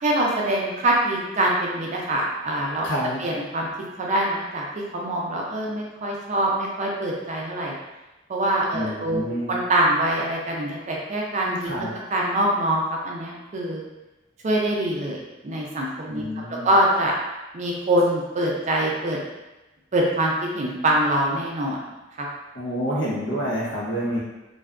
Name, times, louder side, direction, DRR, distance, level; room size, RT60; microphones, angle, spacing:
voice 1, 0.0-2.9 3.2-3.7 4.0-4.6 4.9-7.7 8.3-11.9 12.1-13.8 14.4-16.2 16.5-17.1 17.5-19.2 19.9-21.8 22.2-22.3, right 1 dB, 40° right, -2 dB, 0.4 m, -24 dB
voice 2, 2.8-3.2 8.7-9.5 11.6-11.9 16.1-16.7 22.5-24.2, equal, 85° left, -6 dB, 0.9 m, -28 dB
2.6 x 2.3 x 2.4 m, 1.0 s
head